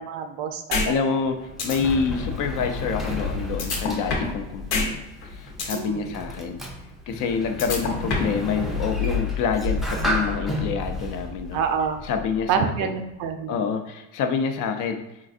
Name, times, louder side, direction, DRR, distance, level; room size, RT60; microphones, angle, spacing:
voice 1, 0.0-1.2 5.7-6.2 11.5-12.0 12.5-13.6, right 7 dB, 60° right, 6 dB, 0.5 m, -27 dB
sound 1, 0.7-0.9 1.2-1.3 1.6-1.8 3.6-4.4 4.7-4.9 5.2-5.8 7.6-8.4, left 4 dB, 85° left, 0.9 m, -25 dB
voice 2, 0.8-6.6 7.1-11.6 12.0-13.0 13.5-15.1, left 6 dB, 50° left, 6 dB, 0.5 m, -27 dB
Sliding door, 1.1-12.6, left 2 dB, ahead, 0.4 m, -31 dB
3.8 x 2.5 x 2.4 m, 0.95 s
supercardioid pair, 100°, 39 cm